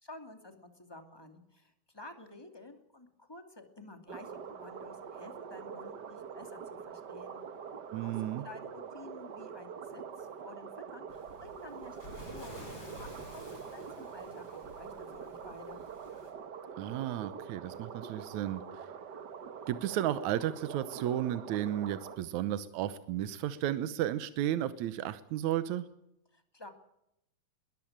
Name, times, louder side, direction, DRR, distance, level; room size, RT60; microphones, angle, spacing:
voice 1, 0.0-7.4 8.0-12.0 12.3-15.8 26.3-26.7, left 2 dB, 10° left, 6 dB, 2.2 m, -51 dB
sound 1, 4.1-22.2, right 7 dB, 50° right, 1.3 m, -45 dB
voice 2, 7.9-8.4 16.8-18.8 19.7-25.8, right 12 dB, 80° right, 13 dB, 2.2 m, -33 dB
Waves surf, 11.1-16.3, left 1 dB, 40° left, 6.5 m, -51 dB
21.5 x 14.0 x 8.8 m, 0.80 s
omnidirectional pair, 3.3 m